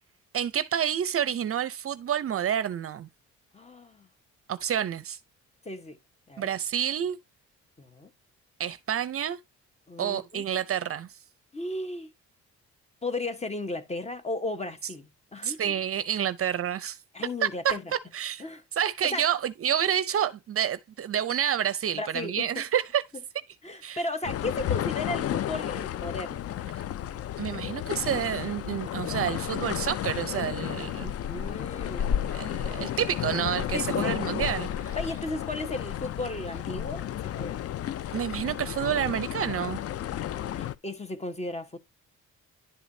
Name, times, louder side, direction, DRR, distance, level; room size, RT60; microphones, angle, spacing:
voice 1, 0.3-3.1 4.5-5.2 6.4-7.2 8.6-9.4 10.0-11.1 15.4-17.0 17.4-17.8 18.1-18.4 18.8-23.0 23.8-24.0 26.7-26.8 27.4-31.4 32.0-35.0 38.1-39.8, right 9 dB, 50° right, 0.6 m, -29 dB
voice 2, 3.5-4.1 5.6-6.0 6.3-6.5 7.8-8.1 9.9-10.4 11.5-12.1 13.0-15.8 17.1-17.8 18.4-18.6 19.0-19.3 21.9-22.5 23.6-26.4 31.3-32.1 33.7-34.2 35.0-37.6 40.5-41.8, left 2 dB, 20° left, 1.2 m, -35 dB
sound 1, 24.2-40.7, left 11 dB, 55° left, 0.5 m, -32 dB
11.0 x 5.0 x 2.7 m
cardioid pair, 90°, 30 cm